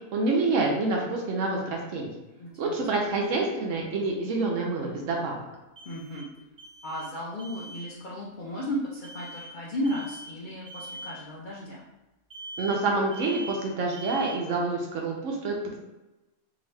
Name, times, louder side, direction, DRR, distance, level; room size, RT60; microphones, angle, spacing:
voice 1, 0.1-2.1 2.6-5.4 12.6-15.8, right 3 dB, 70° right, 0 dB, 0.9 m, -27 dB
voice 2, 2.4-2.9 5.9-6.3 6.8-11.8, equal, 75° left, -5 dB, 0.4 m, -34 dB
sound 1, 2.5-2.6 5.8-7.1 7.4-7.9 9.0-9.5 9.8-10.3 10.7-11.2 12.3-12.9 13.1-13.7 13.9-14.5, right 2 dB, 10° right, 0.7 m, -42 dB
2.8 x 2.6 x 3.1 m, 1.0 s
omnidirectional pair, 1.5 m